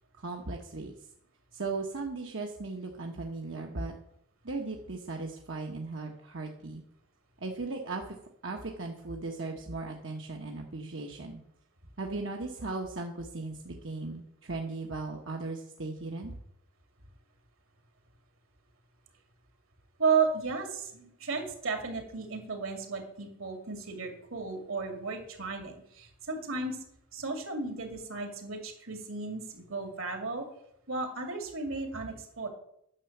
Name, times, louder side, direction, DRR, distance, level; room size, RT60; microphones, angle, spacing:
voice 1, 0.2-0.9 1.5-3.9 4.4-6.8 7.4-8.2 8.4-11.4 12.0-16.3, right 3 dB, 65° right, 1 dB, 1.1 m, -37 dB
voice 2, 20.0-26.8 27.1-30.5 30.9-32.5, right 4 dB, 85° right, 5 dB, 2.3 m, -33 dB
10.0 x 6.8 x 7.1 m, 0.76 s
head